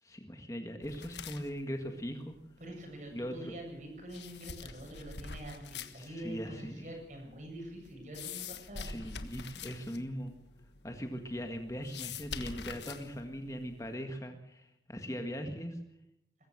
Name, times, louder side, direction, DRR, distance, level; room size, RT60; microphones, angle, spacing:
voice 1, 0.0-2.4 3.1-3.5 6.0-6.9 8.8-10.3 10.8-15.8, equal, 20° left, 5 dB, 1.7 m, -40 dB
sound 1, 0.8-14.0, left 5 dB, 80° left, 1.5 m, -47 dB
voice 2, 2.6-8.9 9.4-9.6, right 1 dB, 45° right, 2 dB, 7.7 m, -45 dB
22.0 x 15.0 x 8.0 m, 0.80 s
head